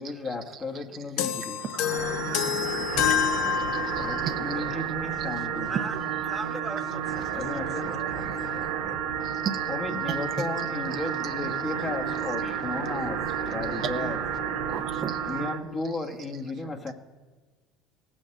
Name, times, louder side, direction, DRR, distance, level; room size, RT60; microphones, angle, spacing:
voice 1, 0.0-1.6 4.0-5.7 7.4-8.0 9.7-13.2 13.5-14.2 15.3-16.9, left 3 dB, 25° left, 2 dB, 1.4 m, -34 dB
sound 1, 1.2-4.4, left 9 dB, 70° left, 0.8 m, -27 dB
voice 2, 1.6-4.4 5.9-6.0 8.2-8.8 9.2-9.7 10.1-10.5 10.9-11.3 13.8-13.9 14.6-15.2, right 7 dB, 50° right, 6 dB, 0.9 m, -37 dB
sound 2, 1.9-15.6, right 8 dB, 85° right, 1.3 m, -31 dB
voice 3, 5.0-5.9 6.2-8.7, right 2 dB, 10° right, 6 dB, 1.2 m, -41 dB
17.0 x 6.4 x 7.6 m, 1.3 s
supercardioid pair, 90°, 0 cm